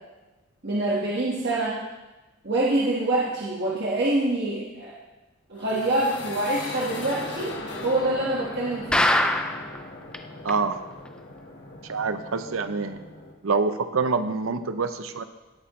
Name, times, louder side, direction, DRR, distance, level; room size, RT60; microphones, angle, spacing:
voice 1, 0.6-1.8 2.4-5.0 5.5-9.1, right 2 dB, 50° right, -6 dB, 1.6 m, -26 dB
sound 1, 5.5-13.3, left 2 dB, 55° left, 1.4 m, -39 dB
sound 2, 8.9-9.8 10.1-10.2 10.5-10.6 11.1-11.2, left 1 dB, 5° left, 0.4 m, -22 dB
voice 2, 10.4-10.8 11.9-13.0 13.4-15.2, right 4 dB, 70° right, 10 dB, 0.6 m, -26 dB
17.0 x 8.5 x 3.1 m, 1.1 s
head